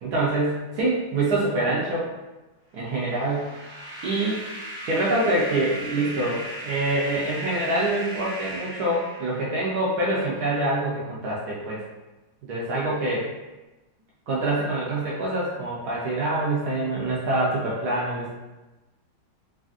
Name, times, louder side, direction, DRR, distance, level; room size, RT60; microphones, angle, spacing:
voice 1, 0.0-2.1 2.7-3.5 4.0-4.4 4.9-11.8 12.4-13.3 14.3-18.3, right 2 dB, 80° right, -5 dB, 0.8 m, -25 dB
sound 1, 2.8-9.8, right 1 dB, 45° right, 1.0 m, -37 dB
3.3 x 2.4 x 2.4 m, 1.1 s
omnidirectional pair, 2.2 m